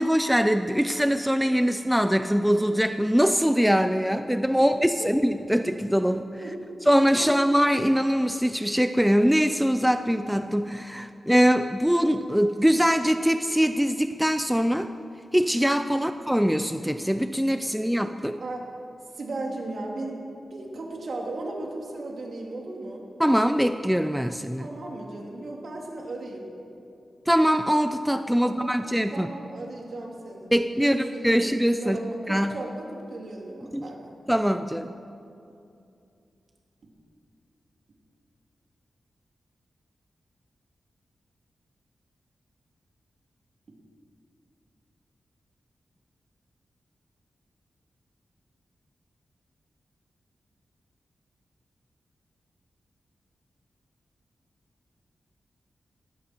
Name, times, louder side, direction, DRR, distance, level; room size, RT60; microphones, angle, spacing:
voice 1, 0.0-6.3 6.9-14.9 15.3-18.4 23.2-24.7 27.3-29.3 30.5-32.0 32.3-32.6 33.7-33.9 34.3-34.9, equal, ahead, 9 dB, 0.5 m, -23 dB
voice 2, 18.3-18.6 19.1-20.2 20.5-23.0 24.5-26.5 28.4-28.7 29.1-30.5 30.8-34.1, right 2 dB, 60° right, -1 dB, 2.9 m, -36 dB
19.0 x 15.5 x 4.5 m, 2.6 s
wide cardioid pair, 105°, 0 cm